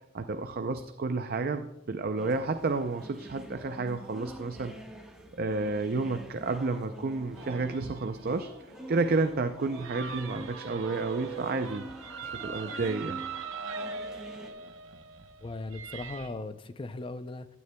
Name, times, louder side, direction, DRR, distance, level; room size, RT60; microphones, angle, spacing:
voice 1, 0.1-4.8 5.4-8.5 8.9-11.9 12.2-13.2, right 3 dB, 50° right, 8 dB, 0.5 m, -31 dB
sound 1, 2.2-14.5, right 1 dB, 5° right, 1.3 m, -46 dB
sound 2, 7.4-16.3, right 5 dB, 85° right, 0.9 m, -41 dB
voice 2, 15.4-17.5, left 2 dB, 25° left, 12 dB, 0.5 m, -38 dB
15.5 x 9.5 x 2.2 m, 0.89 s
head